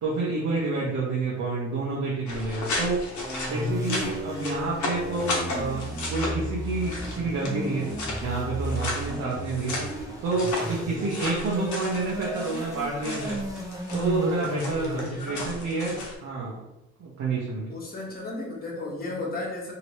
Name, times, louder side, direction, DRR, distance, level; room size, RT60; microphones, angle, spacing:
voice 1, 0.0-3.0 3.5-9.8 10.2-13.4 13.9-16.6 17.0-17.7, right 3 dB, 65° right, -5 dB, 0.9 m, -29 dB
sound 1, 2.3-16.1, left 2 dB, 75° left, 1.0 m, -35 dB
sound 2, 3.2-15.1, equal, 10° right, 0.6 m, -34 dB
voice 2, 14.9-15.5 17.7-19.7, left 2 dB, 30° left, -3 dB, 1.1 m, -34 dB
2.9 x 2.9 x 3.0 m, 0.92 s
cardioid pair, 90°, 30 cm